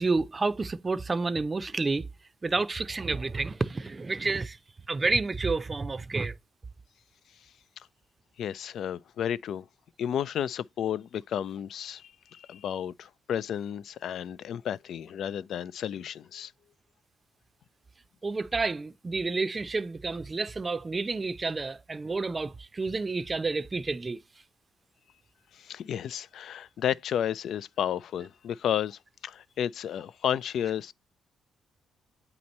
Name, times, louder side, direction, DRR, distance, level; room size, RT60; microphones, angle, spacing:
voice 1, 0.0-2.1 2.4-4.6 4.9-6.3 18.2-24.2, right 3 dB, 25° right, 0.5 m, -29 dB
voice 2, 8.4-9.7 10.0-16.5 25.5-30.9, left 9 dB, 70° left, 0.4 m, -32 dB
8.5 x 2.9 x 5.2 m
cardioid pair, 90°, 0 cm